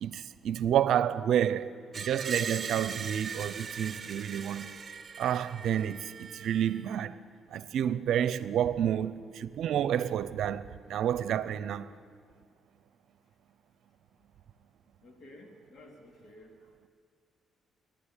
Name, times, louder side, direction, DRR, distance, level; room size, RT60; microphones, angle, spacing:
voice 1, 0.0-4.7 5.2-7.2 7.5-11.9, right 10 dB, 75° right, 0.7 m, -29 dB
Screech, 1.9-6.9, right 6 dB, 35° right, 1.1 m, -40 dB
voice 2, 15.0-16.6, left 1 dB, 50° left, 3.8 m, -52 dB
28.0 x 12.0 x 10.0 m
cardioid pair, 90°, 0 cm